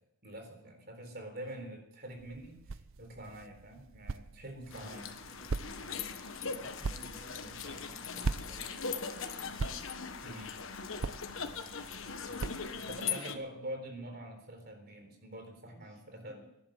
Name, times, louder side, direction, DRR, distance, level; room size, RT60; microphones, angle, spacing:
voice 1, 0.2-5.1 6.4-6.5 10.2-10.6 12.9-16.4, right 1 dB, 45° right, 5 dB, 3.9 m, -45 dB
voice 2, 1.4-1.7 4.6-9.9 11.3-13.4 15.6-16.5, right 1 dB, 5° left, -4 dB, 7.1 m, -57 dB
sound 1, 2.1-13.1, right 3 dB, 65° right, 0.6 m, -42 dB
sound 2, 4.7-13.4, left 6 dB, 65° left, 1.4 m, -40 dB
17.0 x 11.0 x 7.5 m, 0.83 s
head